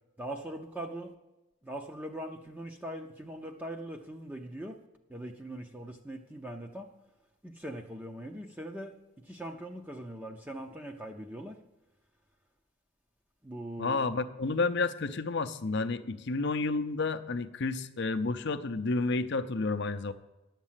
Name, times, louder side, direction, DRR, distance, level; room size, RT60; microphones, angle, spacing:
voice 1, 0.2-1.1 1.6-4.8 5.1-6.9 7.4-8.9 9.3-11.6 13.4-14.1, right 1 dB, 5° right, 2 dB, 0.6 m, -41 dB
voice 2, 13.8-20.1, left 3 dB, 50° left, 10 dB, 0.6 m, -30 dB
11.0 x 7.4 x 7.4 m, 1.0 s
head